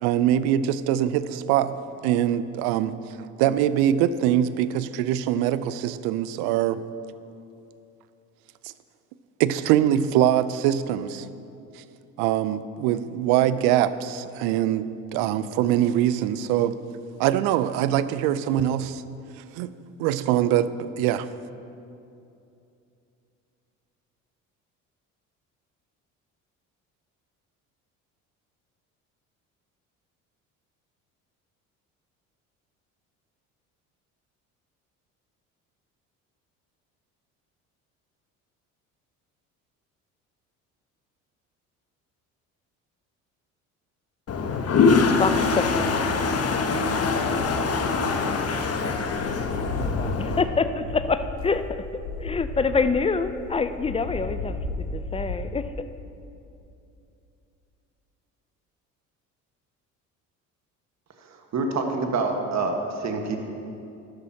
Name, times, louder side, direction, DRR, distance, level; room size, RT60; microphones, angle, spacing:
voice 1, 0.0-1.8 2.0-3.0 3.4-6.8 9.4-11.2 12.2-16.8 17.2-19.0 19.6-19.7 20.0-21.3, right 11 dB, 65° right, 15 dB, 0.6 m, -23 dB
Toilet flush, 44.3-50.4, left 4 dB, 35° left, 1.1 m, -23 dB
voice 2, 45.2-47.5 48.1-48.9 49.3-51.6 52.2-55.9, left 4 dB, 15° left, 10 dB, 0.6 m, -28 dB
sound 1, 49.0-55.4, left 2 dB, 80° left, 1.5 m, -33 dB
voice 3, 61.2-63.4, right 3 dB, 40° right, 3 dB, 1.6 m, -27 dB
13.0 x 12.5 x 2.9 m, 2.7 s
hypercardioid pair, 60°, 40 cm